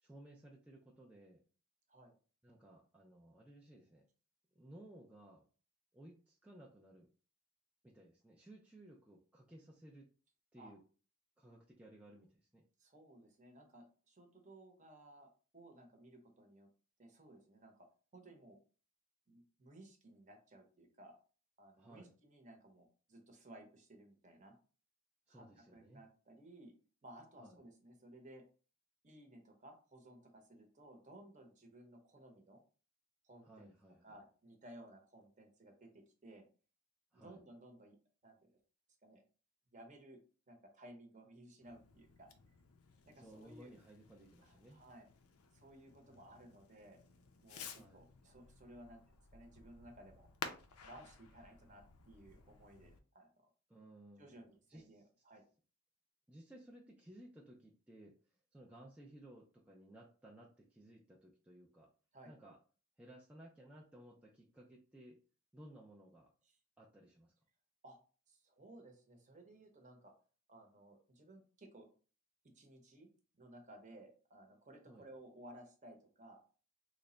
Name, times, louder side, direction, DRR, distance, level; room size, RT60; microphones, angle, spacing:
voice 1, 0.0-1.4 2.4-4.0 4.6-5.4 5.9-7.1 7.8-10.1 10.5-10.8 11.4-12.6 21.8-22.1 25.3-26.0 27.4-27.6 33.4-34.2 37.1-37.4 43.1-44.8 46.1-46.5 47.7-48.0 53.7-54.9 56.3-58.1 58.5-61.9 62.3-62.6 63.0-65.2 65.5-66.3 66.8-67.3 74.9-75.1, right 1 dB, 5° right, -3 dB, 0.4 m, -58 dB
voice 2, 12.8-16.7 17.0-17.9 18.1-18.6 19.3-21.2 21.6-24.6 25.3-26.7 27.0-28.4 29.0-32.6 33.2-33.7 34.0-36.4 37.1-38.0 38.2-38.6 39.0-39.2 39.7-40.2 40.5-42.3 43.1-43.7 44.4-45.1 45.5-47.0 47.4-49.0 49.3-50.3 50.8-53.5 54.2-55.4 62.1-62.3 66.4-66.6 67.8-68.0 68.3-70.1 70.5-71.9 72.4-73.1 73.3-76.4, right 1 dB, 35° right, 3 dB, 0.8 m, -58 dB
Fireworks, 41.6-53.0, left 5 dB, 80° left, 0.5 m, -54 dB
3.2 x 2.1 x 3.8 m, 0.38 s
head